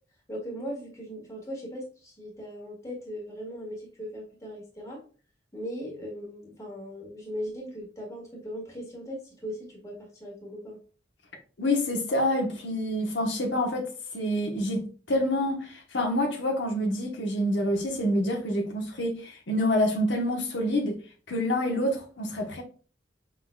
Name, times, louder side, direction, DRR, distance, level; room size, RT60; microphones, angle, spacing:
voice 1, 0.3-5.0 5.5-10.8, equal, 20° left, 1.6 m, -38 dB
voice 2, 11.6-13.9 14.1-21.0 21.3-22.6, left 1 dB, 85° left, 1.0 m, -27 dB
5.8 x 3.8 x 2.2 m
head